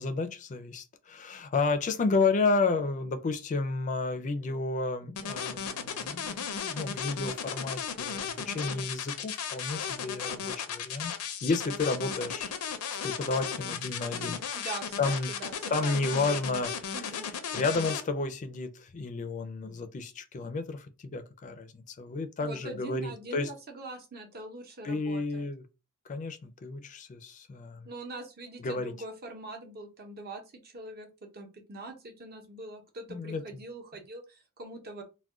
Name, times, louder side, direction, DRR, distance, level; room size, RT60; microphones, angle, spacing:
voice 1, 0.0-11.1 11.4-12.5 13.0-14.4 15.0-15.3 15.7-17.0 17.5-23.5 24.8-25.6 26.1-27.9 28.6-28.9 33.1-33.4, left 3 dB, 35° left, 0.4 m, -31 dB
sound 1, 5.2-18.0, left 7 dB, 90° left, 0.5 m, -35 dB
voice 2, 14.5-16.6 16.9-17.3 22.4-25.5 27.8-35.0, right 2 dB, 45° right, 0.7 m, -43 dB
2.3 x 2.2 x 3.5 m
head